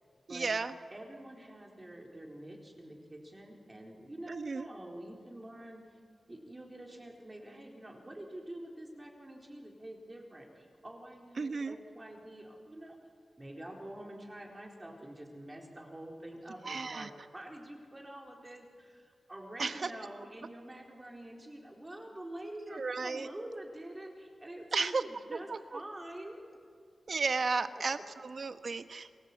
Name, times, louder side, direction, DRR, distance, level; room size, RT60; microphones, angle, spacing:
voice 1, 0.3-0.7 4.3-4.7 11.4-11.8 16.6-17.1 19.6-19.9 22.7-23.3 24.7-25.0 25.3-25.8 27.1-29.2, right 4 dB, 50° right, 9 dB, 1.2 m, -34 dB
voice 2, 0.9-5.8 6.3-13.0 13.4-26.4 27.1-27.4, right 1 dB, 20° right, 0 dB, 4.1 m, -47 dB
29.0 x 21.0 x 8.6 m, 2.1 s
wide cardioid pair, 140°, 0 cm